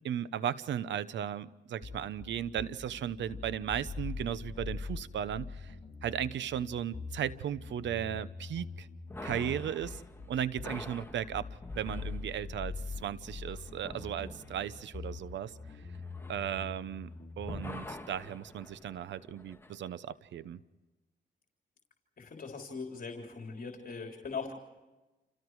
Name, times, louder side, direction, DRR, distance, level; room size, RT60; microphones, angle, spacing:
voice 1, 0.0-5.7 6.0-8.9 9.2-10.0 10.3-11.5 11.7-15.6 16.3-17.1 17.4-20.6, right 10 dB, 85° right, 16 dB, 0.9 m, -36 dB
sound 1, 1.8-17.8, left 4 dB, 30° left, 5.7 m, -43 dB
sound 2, 9.1-17.1 17.4-19.8, left 2 dB, 15° left, 1.8 m, -47 dB
voice 2, 22.2-24.5, left 5 dB, 50° left, 1 dB, 3.6 m, -40 dB
30.0 x 28.0 x 4.8 m, 1.1 s
cardioid pair, 80°, 18 cm